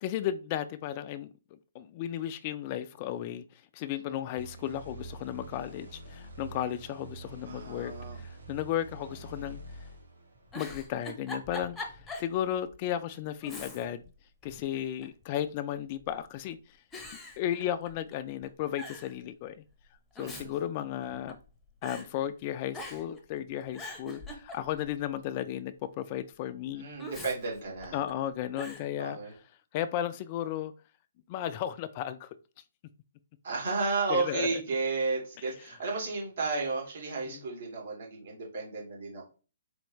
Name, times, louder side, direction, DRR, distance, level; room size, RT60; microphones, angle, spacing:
voice 1, 0.0-1.3 1.7-3.4 3.7-9.6 10.5-14.0 14.4-16.6 17.4-19.6 20.2-21.4 21.8-26.9 27.9-29.2 29.7-30.7 31.3-32.4 34.1-34.6 37.3-37.4, left 11 dB, 35° left, 0.3 m, -34 dB
sound 1, 4.4-10.8, right 2 dB, 85° right, 1.6 m, -46 dB
voice 2, 7.5-8.2 20.2-20.6 26.7-28.0 29.0-29.3 33.4-39.2, right 3 dB, 55° right, 2.4 m, -33 dB
Giggle, 10.3-12.3 12.7-12.8 13.4-14.1 14.4-15.2 16.0-16.4 16.9-18.1 18.4-18.5 18.8-19.1 19.9-21.5 21.8-22.1 22.7-23.2 23.6-24.9 27.0-28.1 28.6-28.9, left 1 dB, 10° left, 0.8 m, -43 dB
4.3 x 3.1 x 3.1 m
figure-of-eight pair, 135°, 0 cm